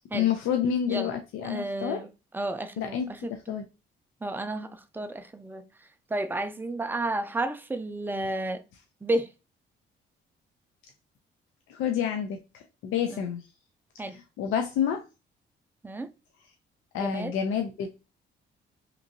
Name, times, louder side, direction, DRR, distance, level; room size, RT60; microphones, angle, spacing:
voice 1, 0.1-2.0 2.8-3.1 3.5-3.6 11.7-13.4 14.4-15.0 16.9-17.9, left 8 dB, 85° left, 0.5 m, -28 dB
voice 2, 1.4-2.1 2.3-3.5 4.2-5.6 6.1-8.6 9.0-9.3 13.1-13.2 14.0-14.2 15.8-16.1 16.9-17.3, right 2 dB, 10° right, 0.4 m, -32 dB
2.9 x 2.5 x 2.6 m
cardioid pair, 90°, 20 cm